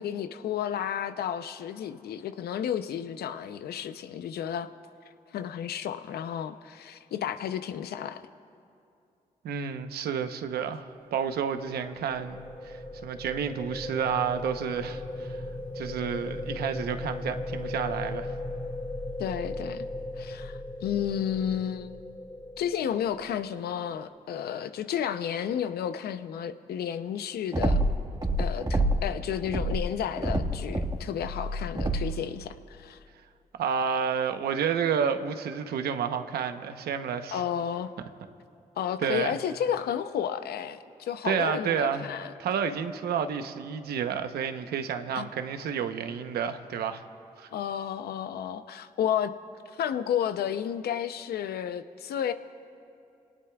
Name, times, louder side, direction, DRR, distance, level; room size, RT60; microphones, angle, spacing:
voice 1, 0.0-4.7 5.3-8.2 19.2-19.9 20.2-22.1 22.6-27.8 28.4-33.0 37.3-37.9 38.8-42.3 45.1-45.3 47.5-49.4 49.7-52.3, left 9 dB, 80° left, 11 dB, 0.7 m, -32 dB
voice 2, 9.4-15.4 15.7-18.3 33.5-37.4 39.0-39.3 41.2-42.1 42.4-47.0 47.4-47.5, right 7 dB, 85° right, 8 dB, 0.9 m, -30 dB
sound 1, 11.4-23.6, left 1 dB, 15° left, 1.9 m, -37 dB
sound 2, 27.5-29.1 29.4-32.2, right 1 dB, 25° right, 1.7 m, -27 dB
29.5 x 18.5 x 2.4 m, 2.5 s
supercardioid pair, 45°, 16 cm